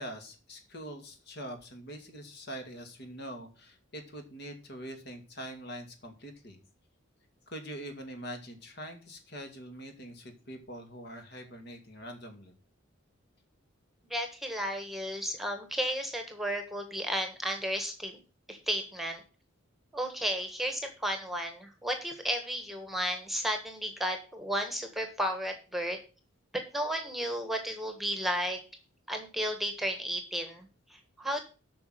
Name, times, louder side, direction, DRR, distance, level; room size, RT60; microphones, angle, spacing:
voice 1, 0.0-6.6 7.5-12.5, equal, 55° left, 5 dB, 2.4 m, -44 dB
voice 2, 14.1-18.1 18.5-19.2 19.9-26.0 26.7-28.6 29.1-31.5, equal, ahead, 6 dB, 1.5 m, -33 dB
8.5 x 6.2 x 7.8 m, 0.35 s
head